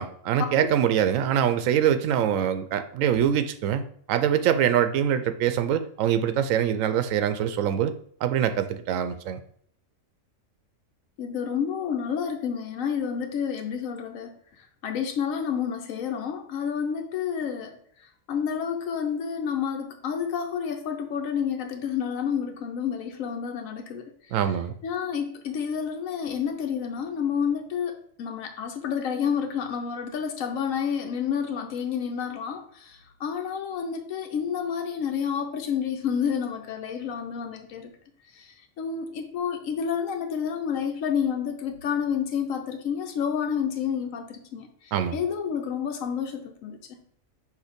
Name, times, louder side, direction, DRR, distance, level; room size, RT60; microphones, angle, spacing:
voice 1, 0.0-3.8 4.1-7.9 8.2-9.4 24.3-24.7 44.9-45.2, right 9 dB, 85° right, 10 dB, 1.0 m, -24 dB
voice 2, 11.2-24.4 24.8-37.9 38.3-47.0, left 7 dB, 90° left, 4 dB, 1.1 m, -30 dB
6.5 x 2.8 x 5.1 m, 0.62 s
omnidirectional pair, 1.3 m